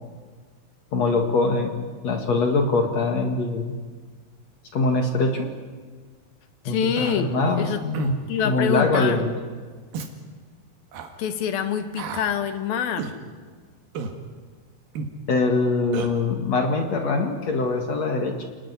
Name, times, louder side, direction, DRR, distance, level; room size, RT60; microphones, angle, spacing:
voice 1, 0.9-3.8 4.7-5.5 6.6-6.8 7.2-8.2 8.4-9.4 15.3-18.5, left 3 dB, 50° left, 4 dB, 2.6 m, -23 dB
voice 2, 6.6-7.8 8.3-9.2 11.2-13.1, left 7 dB, 70° left, 9 dB, 3.2 m, -26 dB
Human voice, 7.0-7.2 7.9-8.2 8.9-9.1 9.9-10.1 10.9-11.1 12.0-12.3 13.0-13.2 14.0-14.2 15.0-15.1 15.9-16.1, right 5 dB, 70° right, 3.7 m, -31 dB
29.5 x 19.0 x 9.8 m, 1.6 s
omnidirectional pair, 4.5 m